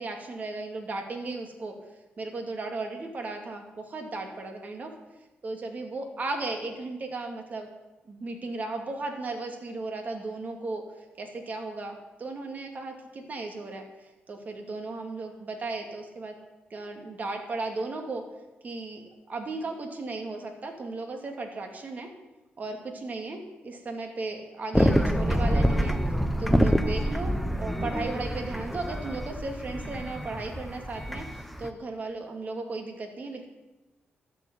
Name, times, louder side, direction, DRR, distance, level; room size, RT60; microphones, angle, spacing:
voice 1, 0.0-1.8 2.2-4.9 5.4-7.7 8.1-10.8 11.2-16.3 16.7-18.2 18.6-22.1 22.6-26.0 26.4-31.3 31.6-33.5, right 3 dB, 45° right, 4 dB, 2.6 m, -35 dB
sound 1, 24.7-31.7, equal, ahead, 1.0 m, -26 dB
12.0 x 7.3 x 9.7 m, 1.1 s
cardioid pair, 85°, 4 cm